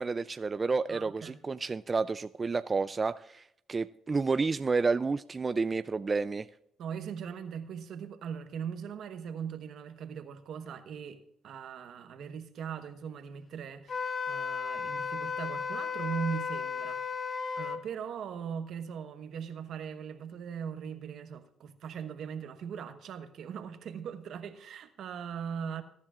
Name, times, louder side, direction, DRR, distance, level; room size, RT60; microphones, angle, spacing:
voice 1, 0.0-6.5, right 4 dB, 35° right, 0.4 m, -30 dB
voice 2, 0.9-1.4 6.8-25.8, right 7 dB, 70° right, 1.2 m, -40 dB
Wind instrument woodwind instrument, 13.9-17.8, left 6 dB, 50° left, 1.3 m, -34 dB
21.5 x 10.5 x 2.5 m
supercardioid pair, 70°, 0 cm